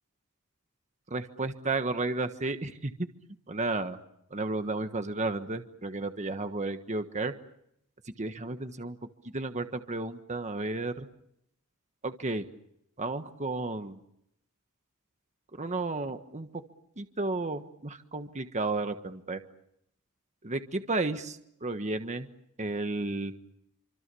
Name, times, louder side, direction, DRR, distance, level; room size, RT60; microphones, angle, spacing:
voice 1, 1.1-2.9 3.5-4.0 4.3-7.3 8.2-9.0 9.3-11.1 12.0-12.4 13.0-14.0 15.6-16.6 17.0-19.4 20.4-22.3 22.6-23.3, right 2 dB, 30° right, 8 dB, 1.4 m, -32 dB
28.0 x 25.5 x 7.0 m, 0.76 s
head